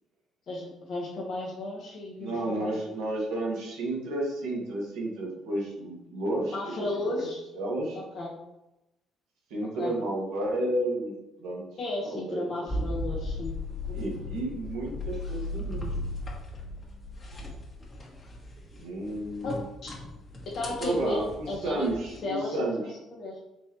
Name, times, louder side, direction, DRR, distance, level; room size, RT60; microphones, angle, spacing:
voice 1, 0.5-2.7 6.5-7.4 7.9-8.3 9.8-9.9 11.8-13.5 19.4-19.5 19.8-19.9 20.5-21.9 22.2-22.7 23.1-23.3, left 2 dB, 55° left, -3 dB, 1.0 m, -34 dB
voice 2, 2.2-6.6 7.2-7.3 7.5-8.0 9.5-11.6 12.0-12.4 12.7-12.8 13.9-15.9 18.8-19.6 20.8-22.8, right 1 dB, 75° right, -2 dB, 1.2 m, -31 dB
sound 1, 12.7-22.2, left 2 dB, 40° left, 1.3 m, -37 dB
4.5 x 3.2 x 2.9 m, 0.92 s
hypercardioid pair, 50°, 0 cm